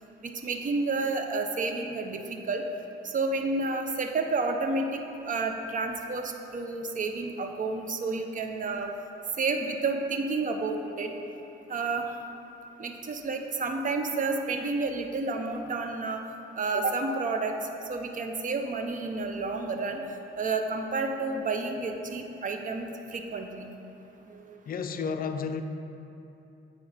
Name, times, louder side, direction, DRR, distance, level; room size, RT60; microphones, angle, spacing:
voice 1, 0.2-2.6 3.0-8.9 9.4-11.1 11.7-12.1 12.8-16.2 16.6-17.6 17.9-20.0 20.4-23.7 24.3-24.6, right 3 dB, 40° right, 4 dB, 0.8 m, -30 dB
voice 2, 24.7-25.6, left 6 dB, 45° left, 7 dB, 0.5 m, -31 dB
9.1 x 4.7 x 5.0 m, 2.9 s
cardioid pair, 90°, 20 cm